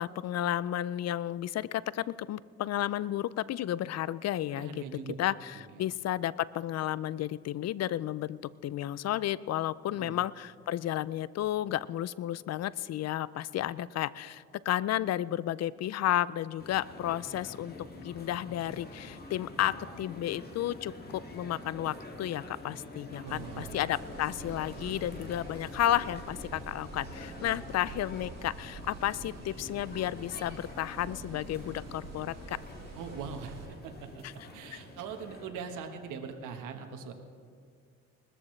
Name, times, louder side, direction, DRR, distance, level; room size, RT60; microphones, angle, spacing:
voice 1, 0.0-4.7 5.2-5.3 5.8-17.7 18.0-32.6 34.7-34.8, left 12 dB, 60° left, 19 dB, 0.5 m, -32 dB
voice 2, 4.5-5.1 5.7-5.8 9.9-10.2 23.2-23.8 27.3-27.6 32.9-34.2 34.5-37.1, right 6 dB, 90° right, 5 dB, 1.4 m, -42 dB
sound 1, 16.6-35.5, left 2 dB, 30° left, 2.2 m, -47 dB
sound 2, 23.3-33.7, right 3 dB, 60° right, 2.7 m, -47 dB
20.5 x 13.5 x 3.3 m, 2.1 s
cardioid pair, 90°, 30 cm